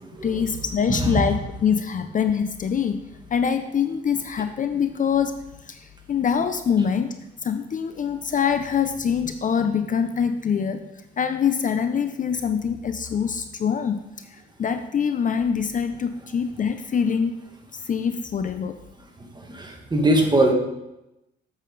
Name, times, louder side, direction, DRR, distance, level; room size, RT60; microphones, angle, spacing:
voice 1, 0.2-3.0 3.3-5.3 5.7-5.8 6.1-7.2 7.4-10.8 11.2-14.0 14.6-17.4 17.9-18.7, left 7 dB, 40° left, 8 dB, 0.5 m, -24 dB
voice 2, 0.9-1.2 19.5-20.5, right 1 dB, 20° right, 2 dB, 1.6 m, -21 dB
7.6 x 7.1 x 4.0 m, 0.92 s
cardioid pair, 90°, 20 cm